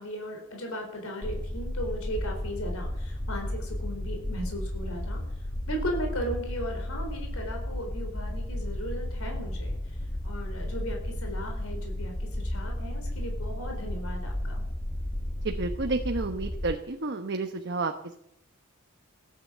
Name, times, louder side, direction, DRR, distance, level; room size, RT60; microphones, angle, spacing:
voice 1, 0.0-5.2 5.7-9.8 10.2-14.6, equal, 70° left, 3 dB, 4.1 m, -37 dB
sound 1, 1.2-16.8, left 1 dB, 20° left, 1.0 m, -33 dB
voice 2, 15.4-18.2, right 3 dB, 50° right, 4 dB, 1.1 m, -31 dB
16.5 x 9.8 x 7.5 m, 0.75 s
head